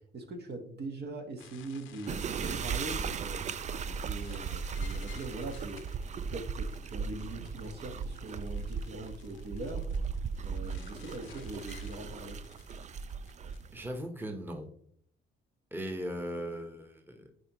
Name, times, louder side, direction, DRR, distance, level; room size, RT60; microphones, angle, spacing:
voice 1, 0.1-3.4 3.8-5.8 6.3-9.8 10.4-12.4 15.7-15.8, right 2 dB, 55° right, 4 dB, 1.4 m, -42 dB
sound 1, 1.4-13.6, left 10 dB, 85° left, 0.7 m, -55 dB
sound 2, 2.1-14.0, right 6 dB, 35° right, 0.4 m, -37 dB
voice 2, 13.7-14.7 15.7-17.3, equal, 10° right, 3 dB, 1.1 m, -38 dB
9.7 x 4.3 x 3.1 m, 0.64 s
cardioid pair, 90°, 20 cm